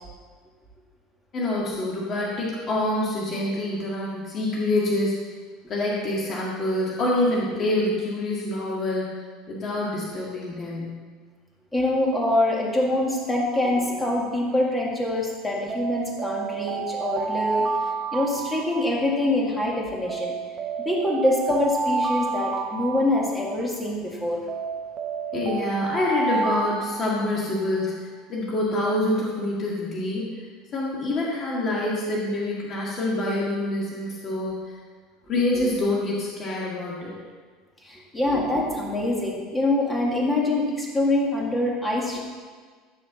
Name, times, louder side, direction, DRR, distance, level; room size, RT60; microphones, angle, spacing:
voice 1, 1.3-5.2 5.7-9.1 9.5-11.0 25.3-30.4 30.7-34.7 35.3-37.1, left 1 dB, 30° left, -5 dB, 1.8 m, -26 dB
voice 2, 11.7-17.7 18.1-20.3 20.9-24.4 35.6-35.7 37.8-42.2, left 1 dB, 10° left, -2 dB, 2.0 m, -24 dB
Alarm, 15.7-19.4 20.1-23.8 24.5-27.7, right 5 dB, 30° right, 0.8 m, -30 dB
14.5 x 5.0 x 7.2 m, 1.5 s
cardioid pair, 165°, 0 cm